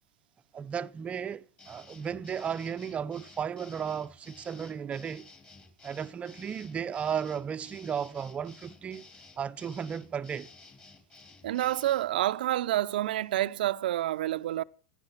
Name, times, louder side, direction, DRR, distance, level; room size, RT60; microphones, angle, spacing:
voice 1, 0.5-5.3 5.8-9.1 9.4-10.5, right 7 dB, 25° right, 0.6 m, -34 dB
sound 1, 1.6-12.1, left 3 dB, 25° left, 3.9 m, -54 dB
voice 2, 11.4-14.6, right 14 dB, 75° right, 0.6 m, -28 dB
16.0 x 11.0 x 5.8 m
hypercardioid pair, 110°, 5 cm